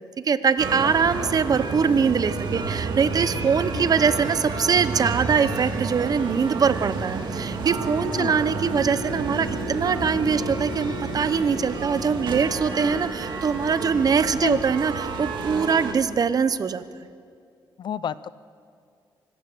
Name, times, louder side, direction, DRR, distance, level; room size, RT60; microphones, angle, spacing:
voice 1, 0.2-16.8, right 6 dB, 45° right, 13 dB, 0.9 m, -23 dB
sound 1, 0.6-15.9, right 4 dB, 65° right, 2.1 m, -30 dB
voice 2, 0.8-1.3 3.6-3.9 8.2-8.3 14.4-14.6 17.8-18.3, left 8 dB, 60° left, 17 dB, 0.6 m, -31 dB
24.5 x 13.5 x 7.9 m, 2.3 s
cardioid pair, 105°, 9 cm